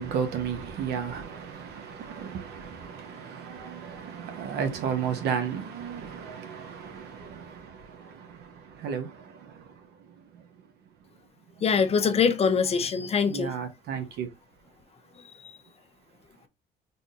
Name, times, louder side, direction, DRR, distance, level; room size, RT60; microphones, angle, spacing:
voice 1, 0.0-10.4 13.2-14.3, right 7 dB, 75° right, 1.1 m, -34 dB
voice 2, 11.6-13.6 15.4-15.5, left 6 dB, 35° left, 0.7 m, -23 dB
4.3 x 3.5 x 2.5 m
cardioid pair, 110°, 17 cm